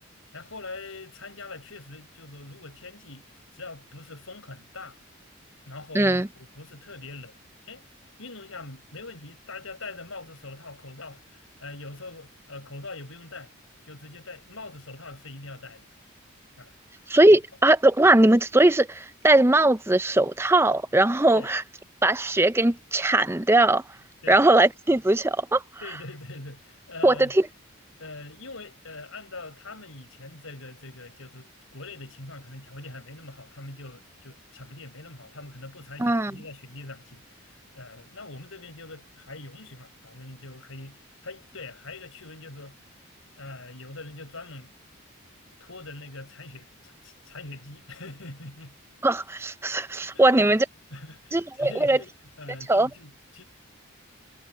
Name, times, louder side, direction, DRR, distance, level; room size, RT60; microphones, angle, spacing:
voice 1, 0.3-5.0 5.7-7.4 7.6-7.9 8.2-13.5 13.9-15.9 16.6-16.7 17.3-17.4 21.3-21.5 24.2-24.4 25.8-27.3 28.0-42.8 43.4-44.7 45.6-48.8 50.1-50.5 50.9-53.4, left 2 dB, 75° left, 5.6 m, -43 dB
voice 2, 5.9-6.3 17.1-21.6 22.0-23.8 24.3-25.6 27.0-27.4 36.0-36.3 49.0-50.6 51.3-52.0 52.7-52.9, right 2 dB, 10° right, 0.5 m, -20 dB
head